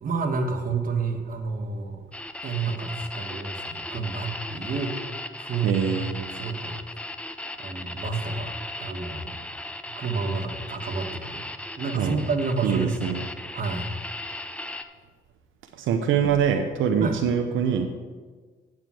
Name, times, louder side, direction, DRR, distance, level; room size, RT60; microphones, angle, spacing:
voice 1, 0.0-2.0 2.4-5.0 5.4-5.8 6.3-6.8 7.6-9.4 10.0-11.5 11.8-13.2 13.5-13.9 17.0-17.2, right 4 dB, 45° right, 3 dB, 1.5 m, -29 dB
sound 1, 2.1-14.8, left 1 dB, 5° left, 0.6 m, -37 dB
voice 2, 5.6-6.3 11.9-12.2 12.6-13.2 15.8-17.9, right 7 dB, 80° right, 4 dB, 0.7 m, -24 dB
8.9 x 5.0 x 7.6 m, 1.4 s
cardioid pair, 90°, 20 cm